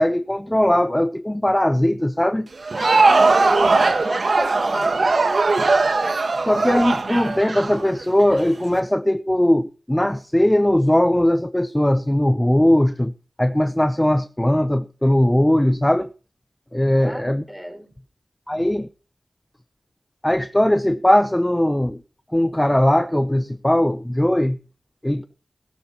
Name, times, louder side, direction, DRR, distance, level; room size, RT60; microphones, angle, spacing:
voice 1, 0.0-2.5 6.4-13.1 13.4-16.1 16.7-17.4 18.5-18.9 20.2-22.0 22.3-24.6 25.0-25.2, left 1 dB, 15° left, 0.8 m, -19 dB
Crowd, 2.5-8.4, right 3 dB, 65° right, 1.6 m, -19 dB
voice 2, 2.7-5.3 17.0-17.9, equal, 5° right, 5.6 m, -32 dB
19.0 x 12.5 x 3.1 m
wide cardioid pair, 55°, 0 cm